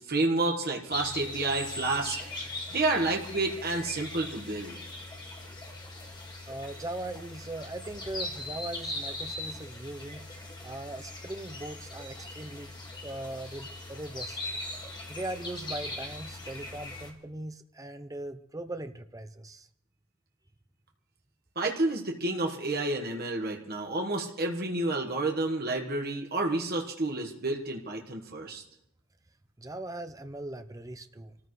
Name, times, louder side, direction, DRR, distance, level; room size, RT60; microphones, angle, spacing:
voice 1, 0.1-4.8 21.5-28.6, right 2 dB, 50° right, 1 dB, 1.4 m, -30 dB
sound 1, 0.9-17.1, left 2 dB, 20° left, 1.9 m, -40 dB
voice 2, 6.4-10.2 10.6-12.7 13.0-14.4 15.1-19.7 29.6-31.4, right 1 dB, 15° right, 9 dB, 0.7 m, -39 dB
26.0 x 14.0 x 3.2 m, 0.77 s
head